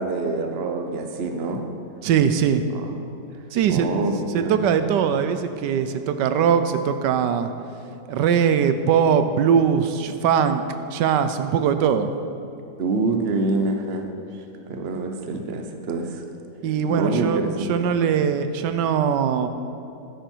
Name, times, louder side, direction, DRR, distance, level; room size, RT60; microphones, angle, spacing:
voice 1, 0.0-1.6 2.7-2.8 3.7-4.7 12.8-14.1 14.7-16.2 16.9-17.7, right 3 dB, 45° right, 5 dB, 1.0 m, -26 dB
voice 2, 2.0-2.6 3.5-3.9 4.3-7.5 8.1-10.6 10.9-12.1 16.6-17.4 17.7-19.5, right 7 dB, 85° right, 10 dB, 1.3 m, -21 dB
13.0 x 10.0 x 4.5 m, 2.7 s
omnidirectional pair, 1.8 m